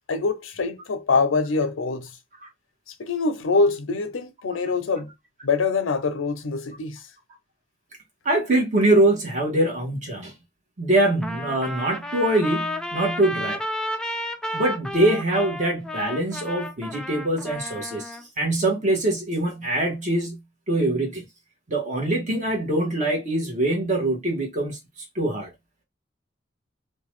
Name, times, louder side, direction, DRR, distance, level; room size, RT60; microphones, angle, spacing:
voice 1, 0.1-2.1 3.0-5.1 5.4-7.1, left 4 dB, 90° left, 0.6 m, -24 dB
voice 2, 8.2-10.3 10.8-13.6 14.5-18.1 18.4-20.4 20.7-21.2 21.7-24.8 25.1-25.5, right 1 dB, 40° right, 1.0 m, -23 dB
Trumpet, 11.2-18.2, left 1 dB, 5° left, 0.3 m, -32 dB
2.7 x 2.2 x 3.1 m
head